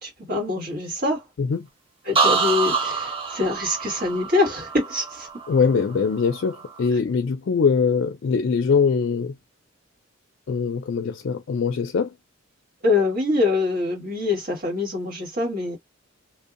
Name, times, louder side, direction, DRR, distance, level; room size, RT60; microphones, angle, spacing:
voice 1, 0.0-1.2 2.0-5.3 12.8-15.8, left 3 dB, 40° right, 1.4 m, -24 dB
sound 1, 2.1-6.0 6.3-6.8, right 4 dB, 25° right, 0.6 m, -26 dB
voice 2, 5.5-9.3 10.5-12.1, left 5 dB, 55° left, 0.4 m, -22 dB
2.6 x 2.1 x 2.4 m
head